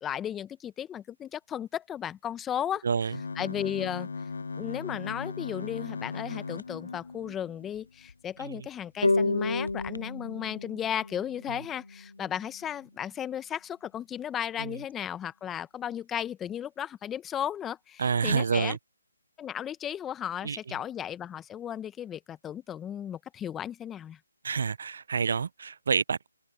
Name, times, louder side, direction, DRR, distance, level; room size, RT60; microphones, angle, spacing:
voice 1, 0.0-2.8 3.3-4.1 4.6-18.8 19.4-24.2, left 9 dB, 10° left, 1.3 m, -35 dB
sound 1, 3.1-8.1 8.7-8.8 9.1-9.2 9.7-10.0, left 4 dB, 65° left, 0.6 m, -38 dB
sound 2, 9.0-12.3, left 2 dB, 90° left, 1.9 m, -30 dB
voice 2, 18.0-18.8 20.4-20.6 24.4-26.3, right 6 dB, 60° right, 0.7 m, -28 dB
open air
figure-of-eight pair, 150°, 0 cm